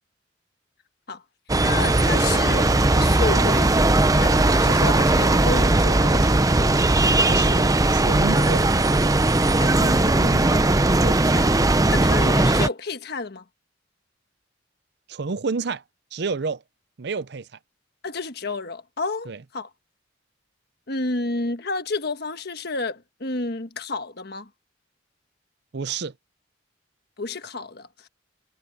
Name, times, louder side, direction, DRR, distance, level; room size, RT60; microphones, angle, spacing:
sound 1, 1.5-12.7, right 2 dB, 20° right, 0.7 m, -18 dB
voice 1, 1.6-6.8 9.5-10.6 11.3-11.5 11.9-13.4 18.0-19.7 20.9-24.5 27.2-28.1, left 3 dB, 55° left, 1.4 m, -31 dB
voice 2, 7.3-8.8 11.0-11.2 15.1-15.8 16.1-16.6 17.0-17.5 19.3-19.4 25.7-26.1, right 4 dB, 60° right, 0.6 m, -29 dB
head